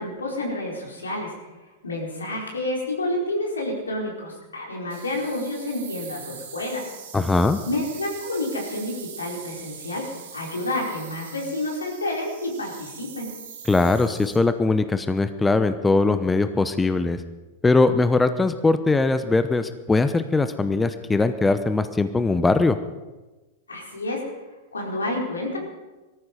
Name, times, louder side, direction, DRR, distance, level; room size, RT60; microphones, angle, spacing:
voice 1, 0.0-1.3 1.8-6.9 7.6-13.3 23.7-24.2 24.7-25.6, left 1 dB, 90° left, -2 dB, 4.5 m, -29 dB
sound 1, 4.9-14.4, right 7 dB, 75° right, 3.9 m, -42 dB
voice 2, 7.1-7.6 13.7-17.2 17.6-22.8, left 3 dB, 10° left, 10 dB, 0.8 m, -21 dB
18.5 x 14.0 x 5.3 m, 1.2 s
hypercardioid pair, 95°, 0 cm